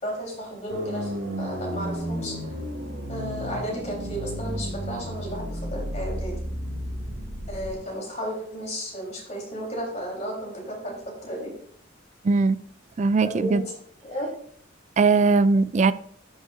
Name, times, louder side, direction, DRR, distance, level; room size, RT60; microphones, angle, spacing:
voice 1, 0.0-2.6 3.1-6.3 7.5-11.5 13.2-13.6 14.0-14.3, equal, 35° left, -2 dB, 3.7 m, -33 dB
sound 1, 0.7-7.7, equal, 75° right, 1.6 m, -33 dB
voice 2, 12.2-12.6 13.0-13.6 15.0-15.9, right 4 dB, 35° right, 16 dB, 0.3 m, -20 dB
14.0 x 6.4 x 2.6 m, 0.62 s
head